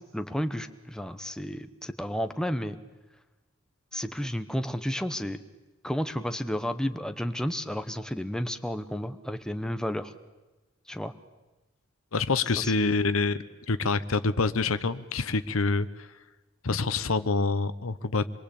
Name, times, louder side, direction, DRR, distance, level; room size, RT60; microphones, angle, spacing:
voice 1, 0.0-2.8 3.9-5.4 5.8-10.1 10.9-11.1 12.6-13.0, equal, 5° left, 9 dB, 1.0 m, -32 dB
voice 2, 12.1-13.4 13.7-15.9 16.6-18.3, left 3 dB, 75° left, 13 dB, 1.0 m, -26 dB
26.0 x 22.5 x 8.6 m, 1.2 s
head